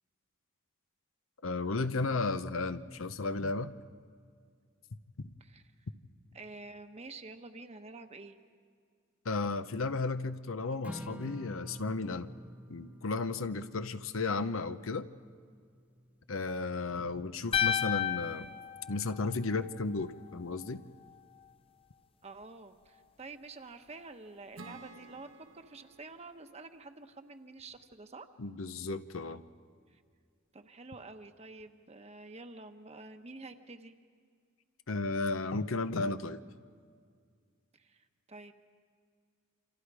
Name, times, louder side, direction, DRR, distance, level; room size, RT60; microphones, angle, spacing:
voice 1, 1.4-3.7 5.2-5.3 9.2-12.3 12.7-15.1 16.3-18.5 18.9-20.8 28.4-29.4 34.9-36.4, left 3 dB, 90° left, 11 dB, 0.8 m, -34 dB
voice 2, 6.3-8.4 22.2-28.3 29.9-30.0 30.5-33.9 37.7-38.5, right 3 dB, 30° right, 7 dB, 1.1 m, -49 dB
Strum, 10.8-17.1, equal, 5° right, 0.9 m, -49 dB
sound 1, 17.5-19.8, left 9 dB, 30° left, 0.6 m, -32 dB
Acoustic guitar / Strum, 24.6-28.0, right 3 dB, 80° right, 1.3 m, -54 dB
27.5 x 26.5 x 4.9 m, 2.1 s
head